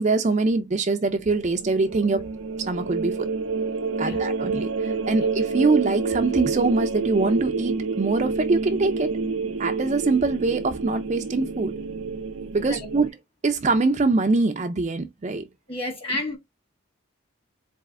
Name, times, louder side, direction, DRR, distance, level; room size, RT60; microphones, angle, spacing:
voice 1, 0.0-2.3 2.7-3.3 4.0-9.1 9.6-11.8 12.5-13.1 13.4-15.5, right 3 dB, 35° right, 0.4 m, -23 dB
sound 1, 1.2-13.1, right 4 dB, 85° right, 0.5 m, -28 dB
voice 2, 15.7-16.4, left 2 dB, 25° left, 1.6 m, -31 dB
4.1 x 3.3 x 3.6 m
head